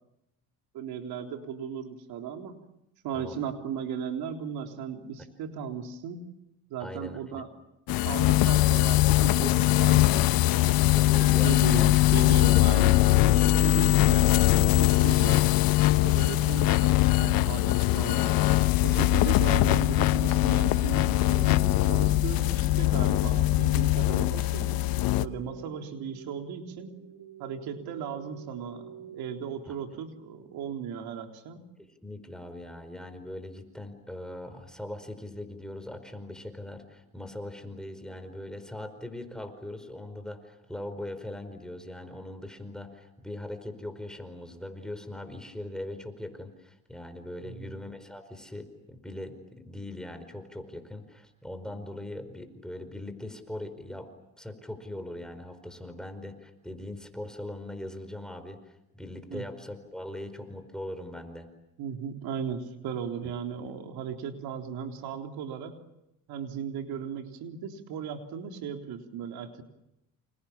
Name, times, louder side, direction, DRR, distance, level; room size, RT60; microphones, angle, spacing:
voice 1, 0.7-2.6 3.0-6.2 6.7-7.5 8.0-10.2 11.0-15.5 16.0-18.4 18.8-24.7 25.2-26.9 27.4-31.6 47.4-47.7 59.3-59.4 61.8-65.8 66.3-69.6, right 7 dB, 70° right, 3 dB, 3.7 m, -36 dB
voice 2, 6.8-7.4 10.9-12.2 12.4-12.6 29.7-29.8 31.8-54.1 54.4-61.5, left 1 dB, ahead, 8 dB, 4.7 m, -40 dB
sound 1, 7.9-25.3, left 16 dB, 65° left, 1.1 m, -22 dB
sound 2, 20.8-29.8, right 7 dB, 50° right, 7.6 m, -48 dB
29.5 x 28.0 x 7.2 m, 0.87 s
cardioid pair, 115°, 38 cm